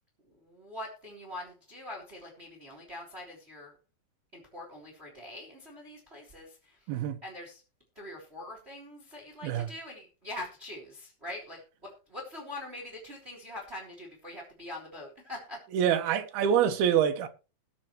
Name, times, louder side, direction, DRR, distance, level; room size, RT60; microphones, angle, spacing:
voice 1, 0.3-3.8 4.3-6.9 7.2-7.6 7.9-15.6, left 1 dB, 15° right, 3.2 m, -43 dB
voice 2, 6.9-7.2 9.4-9.7 15.7-17.3, right 9 dB, 75° right, 2.9 m, -26 dB
20.5 x 7.6 x 3.1 m
omnidirectional pair, 4.7 m